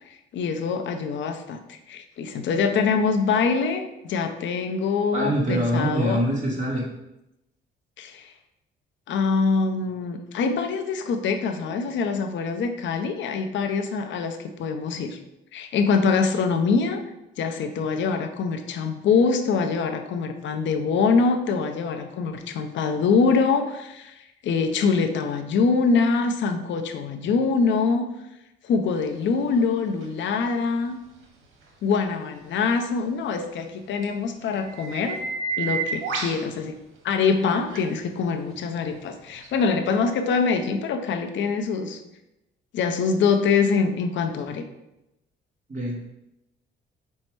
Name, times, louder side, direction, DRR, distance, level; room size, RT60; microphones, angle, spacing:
voice 1, 0.1-6.2 8.0-8.3 9.1-15.2 15.5-17.0 17.4-28.1 28.6-31.0 31.8-35.2 35.6-36.8 37.0-42.0 42.7-44.6, left 5 dB, 70° left, 5 dB, 0.6 m, -24 dB
voice 2, 5.1-6.9 45.7-46.1, equal, 40° right, -3 dB, 1.3 m, -24 dB
sound 1, 30.0-30.1 34.0-34.1 34.5-36.4 37.7-37.8 39.4-39.5, right 4 dB, 85° right, 0.9 m, -29 dB
5.4 x 2.1 x 4.6 m, 0.90 s
cardioid pair, 90°, 20 cm